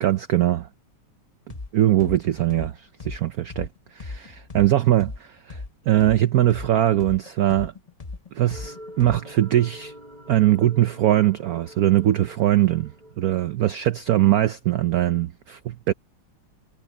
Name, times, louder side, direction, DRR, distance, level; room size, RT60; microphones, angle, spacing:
voice 1, 0.0-0.7 1.7-3.7 3.9-7.7 8.3-9.9 10.3-12.9 13.2-15.9, right 13 dB, 85° right, 0.8 m, -21 dB
sound 1, 1.5-1.7 2.0-5.7 6.0-9.4, left 3 dB, 40° left, 0.5 m, -37 dB
sound 2, 8.5-13.5, equal, 20° right, 8.2 m, -45 dB
omnidirectional pair, 2.3 m